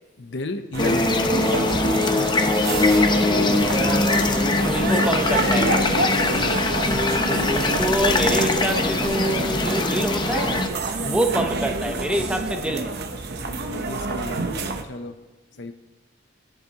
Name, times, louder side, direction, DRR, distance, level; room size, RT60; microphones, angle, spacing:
voice 1, 0.2-1.3 6.3-6.7 11.0-11.4 13.4-14.4 14.8-15.2 15.5-15.7, left 2 dB, 65° left, 8 dB, 0.8 m, -33 dB
sound 1, 0.7-14.8, right 2 dB, 55° right, 0.9 m, -28 dB
sound 2, 0.8-10.7, left 2 dB, 25° left, 0.7 m, -22 dB
voice 2, 3.2-6.1 6.9-10.7 11.0-13.0, right 1 dB, 5° right, 5 dB, 0.8 m, -27 dB
sound 3, 3.3-10.1, left 2 dB, 90° left, 1.6 m, -35 dB
17.5 x 10.5 x 3.0 m, 1.2 s
head